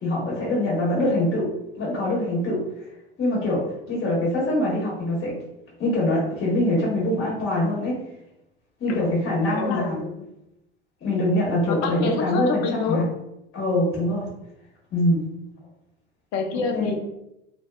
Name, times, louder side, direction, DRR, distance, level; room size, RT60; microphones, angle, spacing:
voice 1, 0.0-1.5 1.8-2.6 3.2-5.3 5.8-8.0 8.8-10.0 11.0-13.0 13.5-14.2 14.9-15.2 16.7-16.9, left 1 dB, 35° left, -5 dB, 1.1 m, -23 dB
voice 2, 9.5-10.3 11.7-13.1 16.3-16.9, left 5 dB, 55° left, 3 dB, 0.6 m, -27 dB
2.5 x 2.2 x 2.3 m, 0.86 s
hypercardioid pair, 70°, 33 cm